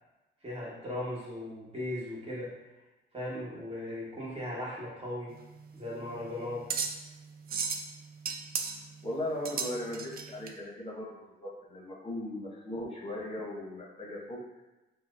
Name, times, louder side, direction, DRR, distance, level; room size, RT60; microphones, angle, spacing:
voice 1, 0.4-2.5 3.1-5.4 5.7-6.7, left 1 dB, 30° right, -6 dB, 1.3 m, -37 dB
sound 1, 5.3-10.5, right 5 dB, 50° right, 0.4 m, -36 dB
voice 2, 9.0-14.4, left 1 dB, 30° left, -4 dB, 0.8 m, -38 dB
5.5 x 2.0 x 2.5 m, 1.1 s
cardioid pair, 90°, 20 cm